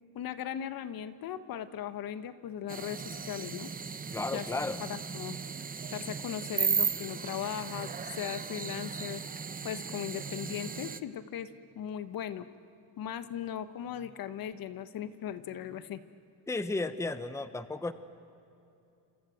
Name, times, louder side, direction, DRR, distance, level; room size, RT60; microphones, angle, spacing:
voice 1, 0.1-3.7 4.3-4.5 4.8-5.4 5.9-9.2 9.6-12.5 13.0-16.0, left 10 dB, 60° left, 12 dB, 1.2 m, -38 dB
sound 1, 2.7-11.0, right 6 dB, 20° right, 0.8 m, -36 dB
voice 2, 4.1-4.9 16.5-17.9, left 3 dB, 5° left, 11 dB, 0.9 m, -34 dB
27.5 x 27.5 x 7.9 m, 2.7 s
cardioid pair, 135°, 39 cm